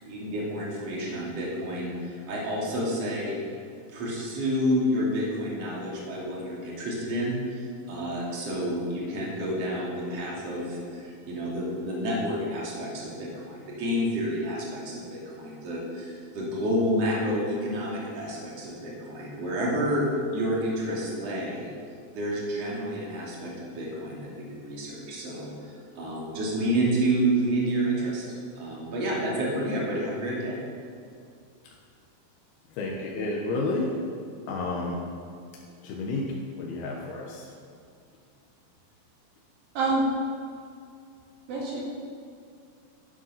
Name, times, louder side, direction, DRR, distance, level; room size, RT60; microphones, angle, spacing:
voice 1, 0.0-3.4 3.9-20.1 20.3-21.7 22.1-28.2 28.6-30.6, equal, 45° right, -4 dB, 3.7 m, -29 dB
voice 2, 32.7-33.9 34.5-35.0 35.8-37.5, left 2 dB, 90° left, -1 dB, 3.2 m, -31 dB
voice 3, 39.8-40.1 41.5-41.8, right 3 dB, 70° right, -4 dB, 4.0 m, -26 dB
12.5 x 11.0 x 5.8 m, 2.4 s
omnidirectional pair, 4.3 m